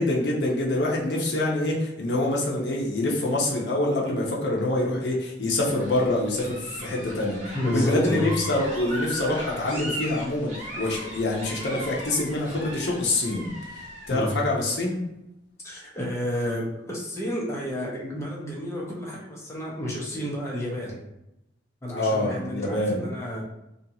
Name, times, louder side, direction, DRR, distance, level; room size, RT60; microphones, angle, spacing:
voice 1, 0.0-13.5 14.1-15.0 22.0-23.0, left 2 dB, 65° left, -2 dB, 0.7 m, -25 dB
sound 1, 5.7-14.3, equal, 40° right, 1.0 m, -38 dB
voice 2, 7.5-8.3 14.1-14.4 15.6-21.0 21.8-23.4, equal, 15° left, -4 dB, 0.6 m, -31 dB
2.6 x 2.3 x 2.7 m, 0.87 s
head